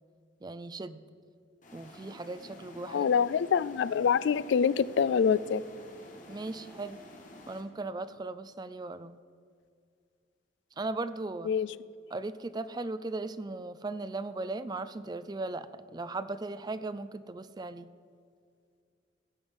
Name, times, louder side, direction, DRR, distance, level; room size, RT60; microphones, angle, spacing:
voice 1, 0.4-1.0 1.7-3.1 6.3-7.0 7.5-9.1 10.8-11.5 12.1-17.9, right 2 dB, 20° right, 14 dB, 0.4 m, -37 dB
sound 1, 1.6-7.6, left 1 dB, 45° left, 1.6 m, -50 dB
voice 2, 2.9-5.6 11.5-11.7, left 7 dB, 65° left, 18 dB, 0.3 m, -25 dB
16.0 x 7.9 x 5.4 m, 2.2 s
head